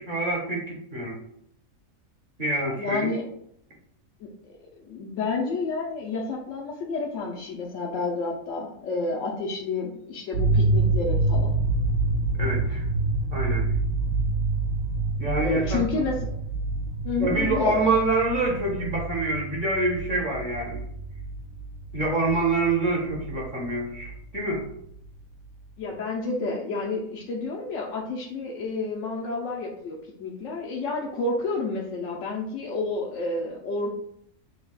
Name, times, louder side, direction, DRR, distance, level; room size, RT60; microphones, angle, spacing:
voice 1, 0.1-1.2 2.4-3.1 12.4-12.8 13.3-13.7 15.2-15.8 17.2-20.8 21.9-24.6, right 2 dB, 40° right, -1 dB, 0.9 m, -26 dB
voice 2, 2.8-3.2 4.2-11.6 15.4-16.3 17.0-17.8 25.8-33.9, left 3 dB, 70° left, -3 dB, 0.9 m, -30 dB
sound 1, 10.3-25.2, right 2 dB, 90° right, 1.6 m, -27 dB
6.6 x 2.3 x 2.3 m, 0.70 s
omnidirectional pair, 1.5 m